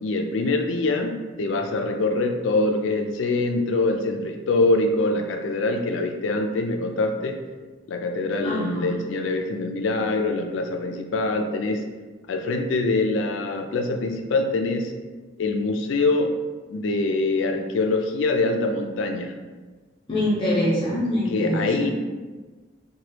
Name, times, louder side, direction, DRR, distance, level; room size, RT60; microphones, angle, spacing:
voice 1, 0.0-7.4 7.9-11.8 12.3-14.9 15.4-16.3 16.7-19.3 21.3-21.9, left 2 dB, 80° left, 4 dB, 0.4 m, -24 dB
voice 2, 8.4-8.9 20.1-21.9, left 1 dB, 25° left, -7 dB, 0.5 m, -24 dB
2.9 x 2.2 x 3.2 m, 1.3 s
head